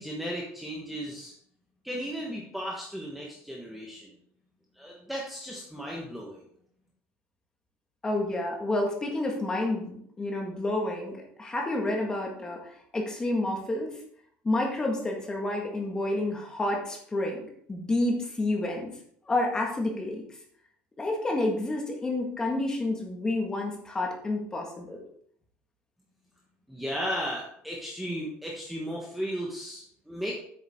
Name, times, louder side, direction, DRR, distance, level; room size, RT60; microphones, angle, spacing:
voice 1, 0.0-1.3 1.8-4.1 4.7-6.4 26.7-30.3, equal, ahead, -3 dB, 1.1 m, -35 dB
voice 2, 8.0-14.0 14.4-17.4 17.7-18.9 19.3-20.2 21.0-25.0, left 2 dB, 15° left, 1 dB, 1.6 m, -29 dB
8.5 x 7.0 x 3.6 m, 0.66 s
cardioid pair, 165°, 5 cm